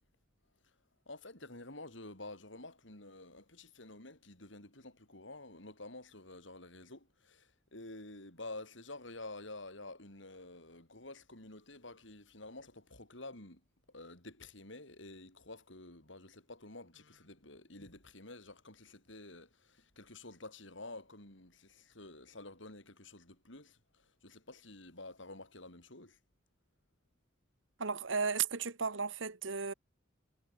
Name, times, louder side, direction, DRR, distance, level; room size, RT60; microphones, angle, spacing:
voice 1, 1.1-13.6 13.9-26.2, left 2 dB, 65° left, 5.8 m, -50 dB
voice 2, 27.8-29.7, right 5 dB, 70° right, 1.5 m, -34 dB
head